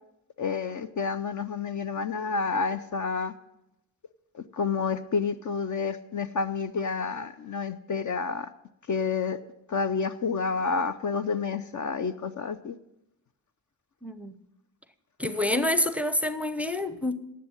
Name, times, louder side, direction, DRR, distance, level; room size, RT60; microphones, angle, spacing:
voice 1, 0.4-3.3 4.3-8.5 8.9-9.4 9.7-12.7, left 5 dB, 35° left, 11 dB, 0.7 m, -29 dB
voice 2, 14.0-14.4 15.2-17.1, left 1 dB, 5° right, 12 dB, 0.8 m, -27 dB
10.5 x 7.5 x 8.6 m, 0.86 s
hypercardioid pair, 45°, 50 cm